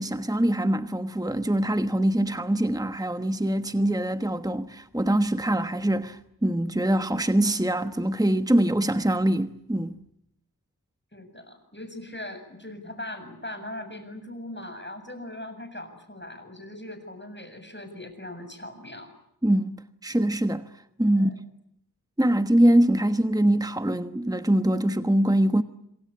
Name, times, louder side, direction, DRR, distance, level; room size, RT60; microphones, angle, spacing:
voice 1, 0.0-10.0 19.4-20.7 21.0-21.3 22.2-25.6, right 1 dB, 10° right, 1.2 m, -23 dB
voice 2, 11.1-19.1 21.1-21.4, left 1 dB, 30° left, 7.5 m, -40 dB
27.0 x 24.5 x 8.5 m
wide cardioid pair, 45°, 39 cm